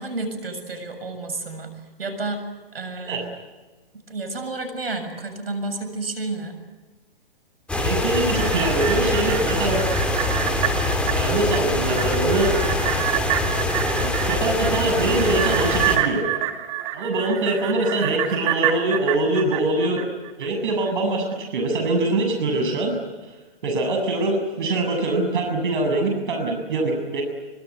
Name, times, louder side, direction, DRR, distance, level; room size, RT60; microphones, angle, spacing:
voice 1, 0.0-2.4 2.7-3.3 3.9-6.6, right 3 dB, 80° right, 9 dB, 7.3 m, -31 dB
sound 1, 7.7-16.0, left 2 dB, 5° left, 3.2 m, -24 dB
voice 2, 7.8-9.8 11.1-12.6 13.9-16.2 16.9-20.0 20.4-22.9 23.6-27.2, right 2 dB, 60° right, 4 dB, 7.4 m, -23 dB
sound 2, 7.9-20.5 20.9-21.0, right 13 dB, 35° right, 2.6 m, -28 dB
25.5 x 22.0 x 9.5 m, 1.2 s
hypercardioid pair, 140°, 29 cm